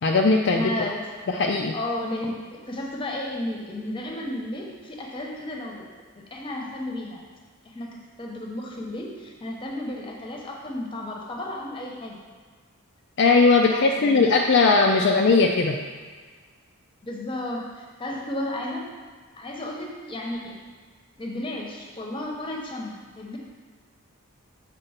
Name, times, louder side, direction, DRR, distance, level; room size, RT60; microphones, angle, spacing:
voice 1, 0.0-0.7 1.3-1.7 13.2-15.8, left 3 dB, 50° left, 1 dB, 0.4 m, -19 dB
voice 2, 0.5-1.1 1.7-5.9 6.1-7.2 7.6-12.2 13.7-14.2 15.0-15.2 17.0-18.9 19.4-20.6 21.2-23.4, left 1 dB, 25° left, 0 dB, 0.9 m, -33 dB
6.7 x 4.1 x 5.7 m, 1.5 s
head